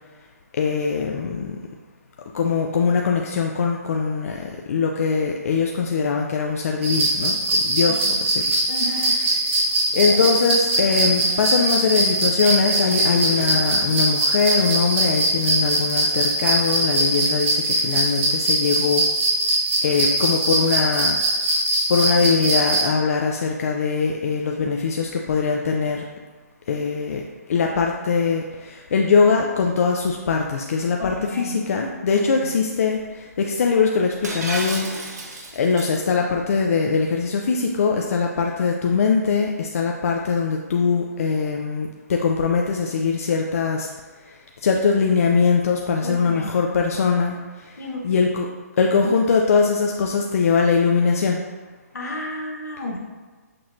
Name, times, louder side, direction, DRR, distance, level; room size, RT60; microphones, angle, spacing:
voice 1, 0.6-1.6 2.3-8.0 8.3-8.5 9.9-19.0 19.8-21.2 21.9-26.0 26.7-27.2 27.5-34.9 35.6-43.9 44.6-47.4 48.0-48.5 48.8-51.4, left 5 dB, 60° left, 1 dB, 0.4 m, -21 dB
sound 1, 6.8-22.9, right 1 dB, 45° right, 1.0 m, -21 dB
voice 2, 7.9-8.2 8.7-9.2 31.0-31.7 32.1-32.5 46.0-46.6 47.8-48.1 49.0-49.1 51.9-53.0, left 1 dB, 85° left, 0 dB, 0.9 m, -32 dB
Dog, 9.6-14.9, left 1 dB, 15° right, 0.9 m, -40 dB
Shatter, 34.2-36.0, right 2 dB, 80° right, 0.9 m, -32 dB
6.0 x 3.0 x 2.4 m, 1.4 s
hypercardioid pair, 145°, 9 cm